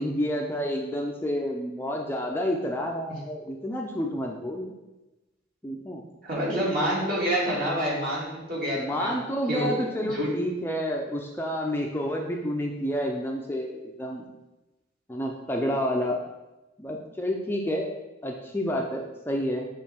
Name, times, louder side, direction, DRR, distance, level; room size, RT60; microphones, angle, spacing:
voice 1, 0.0-4.7 5.6-6.0 8.7-14.2 15.1-16.2 16.8-17.9 18.2-19.7, equal, 10° left, 0 dB, 0.5 m, -29 dB
voice 2, 6.2-9.1 9.5-9.8 10.0-10.3, equal, 50° right, -6 dB, 2.2 m, -27 dB
6.5 x 3.2 x 5.8 m, 1.0 s
head